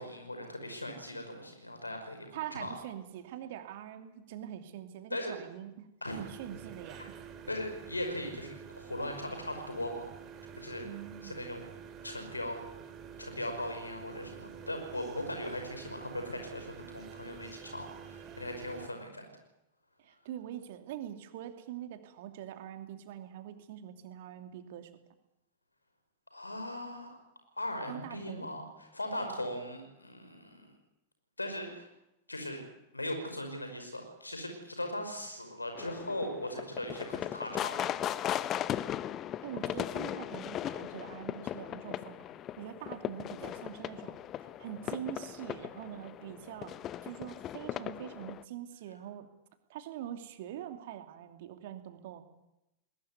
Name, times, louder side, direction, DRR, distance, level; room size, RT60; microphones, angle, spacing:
voice 1, 0.0-2.7 5.1-5.4 6.0-6.2 7.5-10.0 10.6-10.9 11.2-11.7 12.0-12.6 13.2-19.3 26.3-27.2 27.6-30.7 31.4-31.9 32.3-32.6 32.9-37.8, left 1 dB, 85° left, 5 dB, 5.5 m, -39 dB
voice 2, 2.3-5.9 6.2-7.0 10.8-11.5 20.0-24.9 27.9-28.5 39.4-42.3 42.6-44.2 44.6-46.8 47.0-49.3 49.7-52.2, right 11 dB, 55° right, 7 dB, 2.7 m, -44 dB
sound 1, 6.0-18.9, right 7 dB, 35° right, 3.0 m, -48 dB
sound 2, 35.8-48.4, left 11 dB, 30° left, 0.8 m, -38 dB
20.5 x 20.0 x 9.5 m, 0.90 s
figure-of-eight pair, 90°, 0 cm